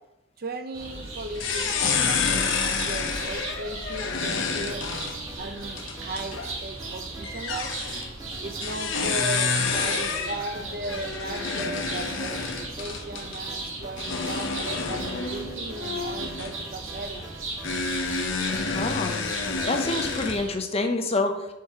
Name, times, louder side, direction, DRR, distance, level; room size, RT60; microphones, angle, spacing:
voice 1, 0.4-4.9 5.4-7.7 8.4-17.3, right 2 dB, 50° right, 8 dB, 0.5 m, -36 dB
sound 1, 0.7-20.5, right 3 dB, 85° right, 1.7 m, -37 dB
sound 2, 1.3-6.5 7.2-8.1 8.6-13.4 14.0-16.6 17.6-20.4, left 5 dB, 70° left, 0.7 m, -29 dB
sound 3, 4.9-19.9, right 1 dB, 15° right, 0.8 m, -46 dB
voice 2, 18.7-21.5, left 2 dB, 30° left, 6 dB, 0.5 m, -27 dB
4.6 x 4.6 x 4.8 m, 0.93 s
head